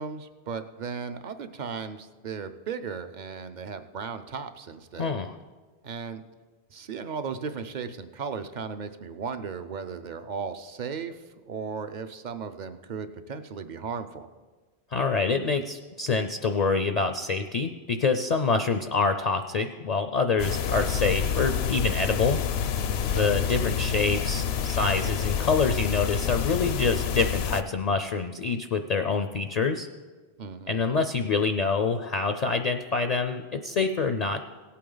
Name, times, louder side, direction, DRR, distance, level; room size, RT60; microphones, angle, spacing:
voice 1, 0.0-5.1 5.8-6.2 6.7-14.3 23.1-23.7 30.4-30.8, right 6 dB, 50° right, 10 dB, 0.6 m, -36 dB
voice 2, 5.0-5.3 14.9-22.4 23.1-29.9 30.7-34.4, left 4 dB, 50° left, 7 dB, 0.5 m, -26 dB
sound 1, 20.4-27.6, left 8 dB, 75° left, 0.8 m, -28 dB
17.5 x 8.5 x 3.9 m, 1.4 s
omnidirectional pair, 1.1 m